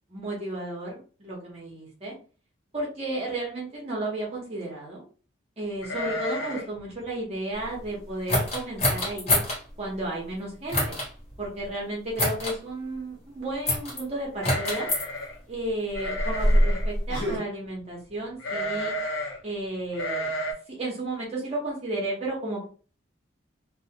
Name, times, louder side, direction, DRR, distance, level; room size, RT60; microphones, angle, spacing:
voice 1, 0.1-2.1 2.7-5.0 5.6-9.4 9.8-11.0 11.4-14.9 15.5-18.9 19.4-20.3 20.7-22.6, right 1 dB, 30° right, -4 dB, 0.7 m, -33 dB
sound 1, 5.8-6.8 7.0-7.1 7.6-7.9 8.4-8.5 8.8-9.3 9.7-9.8 10.9-11.0 11.3-11.7 14.4-15.4 15.9-16.9 18.4-19.4 19.9-20.5, equal, 75° left, 0.7 m, -32 dB
sound 2, 8.3-9.6 10.7-11.1 12.2-12.6 13.7-14.0 14.4-15.0 15.9-17.4, equal, 30° left, 0.8 m, -24 dB
2.7 x 2.0 x 2.7 m, 0.38 s
head